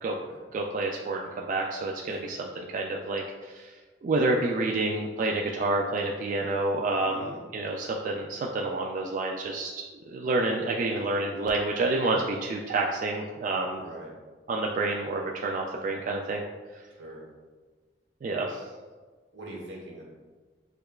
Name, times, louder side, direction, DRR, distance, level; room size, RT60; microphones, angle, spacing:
voice 1, 0.5-3.7 4.0-13.8 14.5-16.4 18.2-18.6, right 2 dB, 50° right, 0 dB, 0.3 m, -29 dB
voice 2, 2.1-2.4 7.0-7.4 13.7-14.1 17.0-17.2 19.3-20.0, right 1 dB, 85° right, -3 dB, 1.2 m, -43 dB
6.4 x 2.3 x 2.3 m, 1.4 s
head